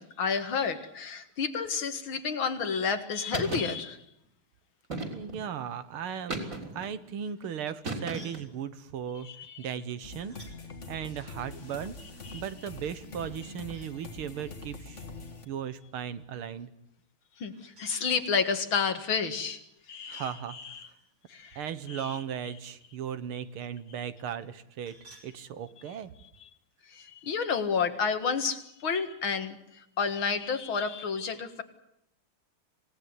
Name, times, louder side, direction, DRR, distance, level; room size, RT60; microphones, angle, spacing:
voice 1, 0.0-4.0 9.2-9.6 12.3-12.4 17.4-19.6 19.9-20.9 21.3-21.6 21.9-22.1 26.9-31.6, left 5 dB, 65° left, 8 dB, 2.5 m, -30 dB
sound 1, 3.3-3.8 4.9-5.5 6.3-6.9 7.8-8.5, right 2 dB, 35° right, 3.9 m, -35 dB
voice 2, 5.1-10.4 10.9-11.9 12.3-15.1 15.5-16.7 20.1-20.9 21.6-24.9 25.2-26.1, right 8 dB, 75° right, 12 dB, 2.1 m, -37 dB
sound 2, 8.1-8.5 10.3-10.6 11.2-13.0 17.5-18.6 19.5-20.3 20.6-22.5 24.4-25.3, right 1 dB, 55° right, 5.7 m, -55 dB
sound 3, 10.0-15.4, left 2 dB, 35° left, 2.0 m, -44 dB
26.5 x 18.0 x 9.7 m, 0.79 s
omnidirectional pair, 2.4 m